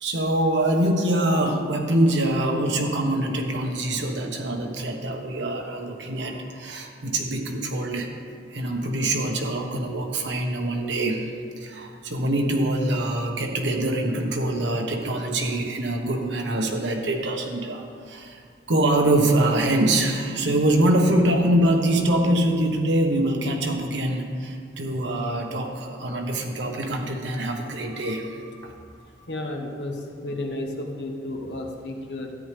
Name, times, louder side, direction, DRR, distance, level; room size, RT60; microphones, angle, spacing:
voice 1, 0.0-8.1 8.5-11.3 11.6-18.4 18.7-28.4, right 1 dB, 75° right, 2 dB, 1.2 m, -24 dB
voice 2, 29.3-32.3, left 1 dB, 70° left, 2 dB, 1.3 m, -32 dB
13.0 x 9.6 x 3.4 m, 2.2 s
head